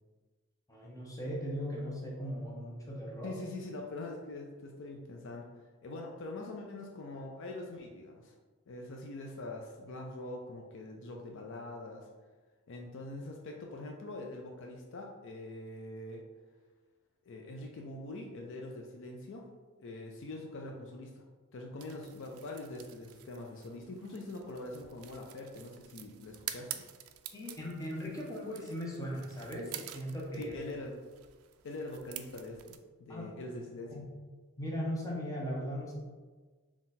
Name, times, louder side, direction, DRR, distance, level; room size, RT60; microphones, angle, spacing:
voice 1, 0.7-3.3 27.3-30.6 33.1-33.3 33.9-34.1 34.6-36.0, equal, 15° left, -4 dB, 0.8 m, -38 dB
voice 2, 3.2-8.3 8.7-12.1 12.7-16.2 17.2-19.5 19.8-21.2 21.5-26.8 30.4-31.0 31.6-34.0, left 2 dB, 55° left, 1 dB, 0.4 m, -43 dB
sound 1, 21.8-32.8, right 11 dB, 65° right, 0.3 m, -48 dB
3.9 x 2.4 x 4.0 m, 1.4 s
head